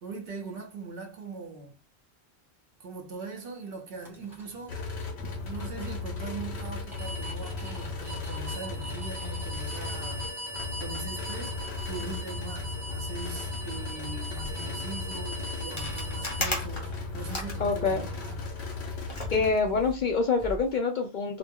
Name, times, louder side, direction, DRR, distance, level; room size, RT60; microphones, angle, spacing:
voice 1, 0.0-1.8 2.8-4.8 5.4-10.2 10.8-18.4, right 4 dB, 65° right, 0.9 m, -41 dB
sound 1, 4.0-16.5, equal, 5° right, 0.6 m, -41 dB
sound 2, 4.7-19.5, left 3 dB, 80° left, 0.9 m, -36 dB
sound 3, 15.7-18.4 19.0-20.7, left 1 dB, 30° left, 0.8 m, -36 dB
voice 2, 17.6-18.1 19.3-21.4, left 4 dB, 60° left, 0.6 m, -26 dB
2.3 x 2.1 x 3.6 m
omnidirectional pair, 1.1 m